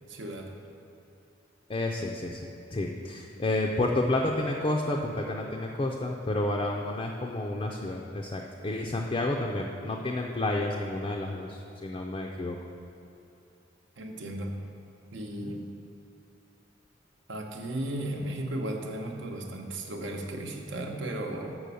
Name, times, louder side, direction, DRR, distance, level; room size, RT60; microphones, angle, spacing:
voice 1, 0.1-0.6 14.0-14.6 15.1-15.7 17.3-21.6, right 1 dB, 70° right, 2 dB, 0.9 m, -35 dB
voice 2, 1.7-2.4 2.7-12.6 15.4-15.5, left 2 dB, 30° left, 0 dB, 0.4 m, -30 dB
6.3 x 5.9 x 6.9 m, 2.7 s
head